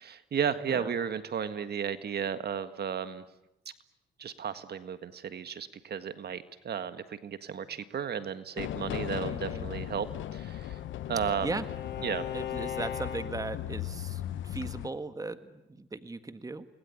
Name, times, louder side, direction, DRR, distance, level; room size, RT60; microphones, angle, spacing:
voice 1, 0.0-3.2 4.2-10.1 10.3-10.8 11.1-11.6 12.0-12.3, right 7 dB, 55° right, 11 dB, 1.8 m, -34 dB
sound 1, 8.6-14.9, left 13 dB, 75° left, 1.0 m, -38 dB
voice 2, 9.2-9.7 11.4-11.7 12.3-16.7, right 3 dB, 15° right, 11 dB, 1.7 m, -38 dB
Bowed string instrument, 10.1-13.7, left 8 dB, 60° left, 3.8 m, -40 dB
29.0 x 21.0 x 9.8 m, 0.90 s
cardioid pair, 90°, 20 cm